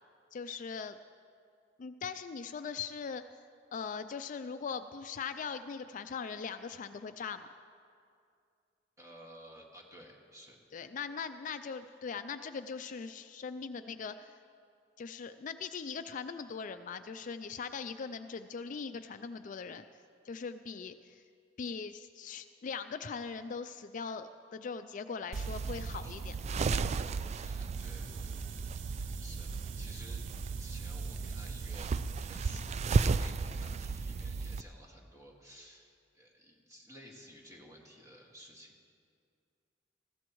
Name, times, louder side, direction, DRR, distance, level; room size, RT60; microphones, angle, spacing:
voice 1, 0.3-1.0 1.8-3.2 3.7-7.5 10.7-14.4 15.0-19.8 20.2-21.2 21.6-26.3 26.7-27.0, left 5 dB, 45° left, 10 dB, 0.4 m, -40 dB
voice 2, 9.0-10.6 25.9-26.3 27.1-30.2 30.6-31.9 32.2-38.7, equal, 20° right, -1 dB, 2.0 m, -54 dB
sound 1, 25.3-34.6, right 4 dB, 35° right, 0.3 m, -34 dB
sound 2, 27.7-32.7, right 9 dB, 85° right, 0.7 m, -53 dB
20.5 x 15.5 x 3.1 m, 2.3 s
head